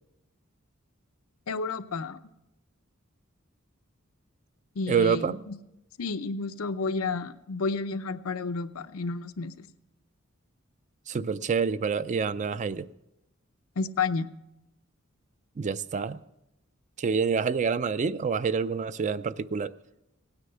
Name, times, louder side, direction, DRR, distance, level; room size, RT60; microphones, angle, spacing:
voice 1, 1.5-2.2 4.8-5.6 6.0-9.7 13.8-14.3, left 4 dB, 90° left, 0.7 m, -31 dB
voice 2, 4.9-5.4 11.1-12.9 15.6-16.2 17.0-19.7, right 5 dB, 35° right, 0.4 m, -27 dB
17.0 x 9.7 x 5.6 m
head